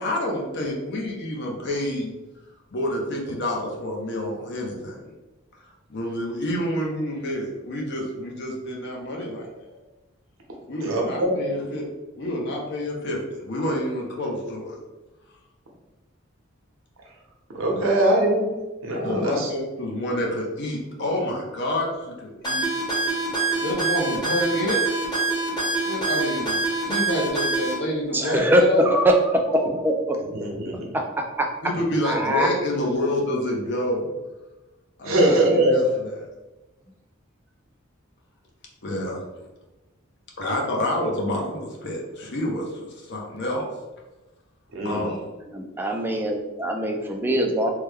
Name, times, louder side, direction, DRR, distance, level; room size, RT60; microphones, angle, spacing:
voice 1, 0.0-2.1 2.7-5.1 5.9-9.8 10.7-11.9 12.2-14.8 17.7-17.9 19.0-22.6 23.6-25.0 25.8-28.9 31.6-34.1 35.0-35.8 38.8-39.2 40.4-43.7 44.8-45.3, left 1 dB, 55° left, -1 dB, 0.7 m, -28 dB
voice 2, 10.8-11.3 17.5-19.5 30.2-31.0 35.0-35.8 44.7-45.0, right 1 dB, 85° right, -1 dB, 0.8 m, -22 dB
sound 1, 22.4-27.7, right 3 dB, 20° left, 0.9 m, -25 dB
voice 3, 28.1-29.2 29.5-30.2 30.9-31.0 31.4-31.5 32.0-32.5 45.5-47.7, right 1 dB, 10° right, 1 dB, 0.3 m, -22 dB
3.2 x 2.2 x 3.4 m, 1.1 s
head